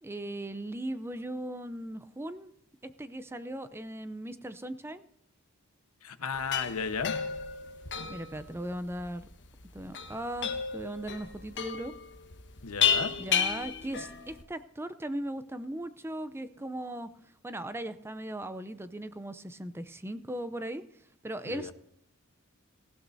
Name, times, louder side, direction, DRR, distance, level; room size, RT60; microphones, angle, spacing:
voice 1, 0.0-2.5 2.8-5.1 8.1-9.2 9.7-11.9 13.2-17.1 17.4-20.8 21.2-21.7, right 1 dB, 10° right, 11 dB, 0.5 m, -38 dB
voice 2, 6.0-7.1 12.6-13.1 21.4-21.7, left 5 dB, 85° left, 9 dB, 1.2 m, -34 dB
sound 1, 6.3-14.4, left 7 dB, 55° left, 1.3 m, -32 dB
18.5 x 16.0 x 2.7 m, 0.71 s
head